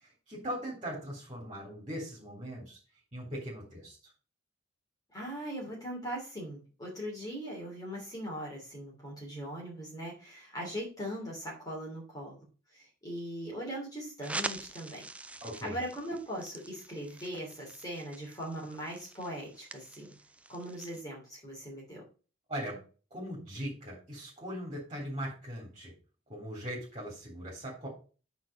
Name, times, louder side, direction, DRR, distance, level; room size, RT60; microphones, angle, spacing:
voice 1, 0.0-2.8 3.1-4.0 15.4-15.8 22.5-22.8 23.1-25.9 26.3-27.9, equal, 25° right, -3 dB, 3.2 m, -40 dB
voice 2, 5.1-12.4 12.7-15.1 15.6-20.2 20.5-22.0, equal, 20° left, -3 dB, 2.8 m, -40 dB
sound 1, 14.2-21.0, right 2 dB, 5° right, 0.4 m, -44 dB
8.8 x 4.1 x 5.2 m, 0.35 s
head